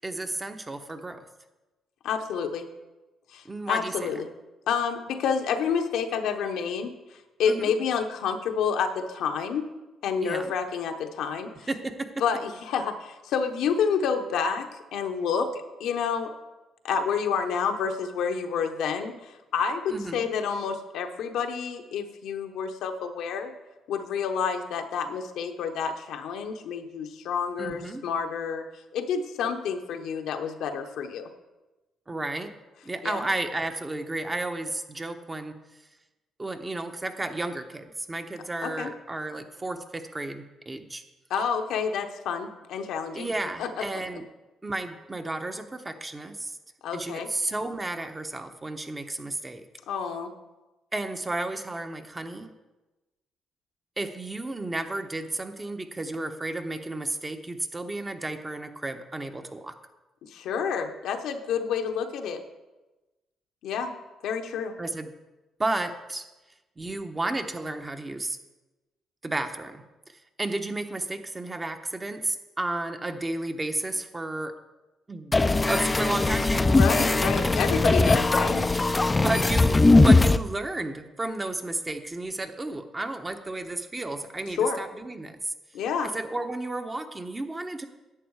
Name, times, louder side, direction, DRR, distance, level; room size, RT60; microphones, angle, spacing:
voice 1, 0.0-1.3 3.4-4.1 7.5-7.7 10.2-10.5 11.7-12.2 19.9-20.3 27.6-28.0 32.1-32.5 32.8-35.5 36.4-41.0 43.1-44.2 44.6-46.6 46.9-49.6 50.9-52.5 54.0-59.7 64.8-65.1 65.6-66.2 66.8-68.4 69.2-74.5 75.1-75.3 75.7-76.7 77.0-77.1 79.2-85.5 86.1-87.9, right 2 dB, 25° right, 6 dB, 1.1 m, -32 dB
voice 2, 2.0-2.7 3.3-4.3 4.7-6.9 7.4-9.6 10.0-11.5 12.2-15.5 15.8-16.3 16.8-23.5 23.9-28.6 28.9-31.3 33.0-33.2 38.6-38.9 41.3-43.3 43.6-43.8 46.8-47.3 49.9-50.3 60.3-62.4 63.6-63.9 64.2-64.7 76.7-78.6 84.6-84.8 85.7-86.1, left 6 dB, 80° left, 5 dB, 1.0 m, -29 dB
sound 1, 75.3-80.4, left 2 dB, 20° left, 0.5 m, -20 dB
11.0 x 7.9 x 4.8 m, 1.1 s
supercardioid pair, 70°, 0 cm